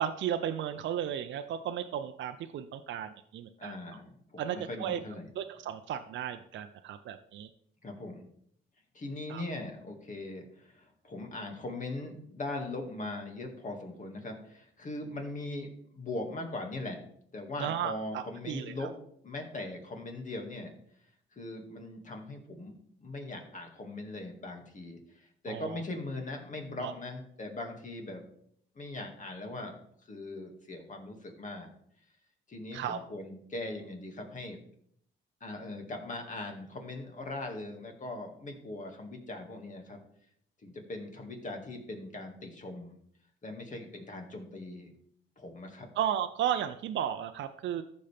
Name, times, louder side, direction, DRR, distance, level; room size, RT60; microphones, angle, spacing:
voice 1, 0.0-3.7 4.4-5.0 5.4-7.5 9.3-9.4 17.6-18.9 25.5-25.8 26.8-26.9 32.7-33.0 46.0-47.8, right 10 dB, 70° right, 8 dB, 0.6 m, -34 dB
voice 2, 3.6-5.3 7.8-8.3 8.9-15.7 15.9-17.0 17.3-18.9 19.2-20.7 21.3-28.2 28.8-29.8 30.1-31.7 32.5-34.6 35.4-40.0 40.6-43.0 43.4-44.9 45.4-45.9, left 2 dB, 40° left, 3 dB, 2.1 m, -40 dB
14.0 x 5.3 x 3.5 m, 0.68 s
cardioid pair, 90°, 20 cm